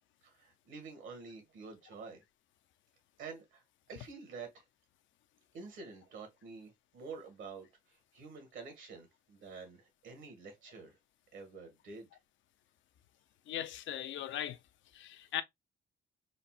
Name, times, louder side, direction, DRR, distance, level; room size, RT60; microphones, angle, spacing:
voice 1, 0.2-2.2 3.2-3.6 3.9-4.6 5.5-11.0 11.3-12.1, right 4 dB, 75° right, 1.5 m, -48 dB
voice 2, 13.5-14.6 14.9-15.4, left 11 dB, 75° left, 0.5 m, -38 dB
4.0 x 2.0 x 2.3 m
cardioid pair, 90°, 20 cm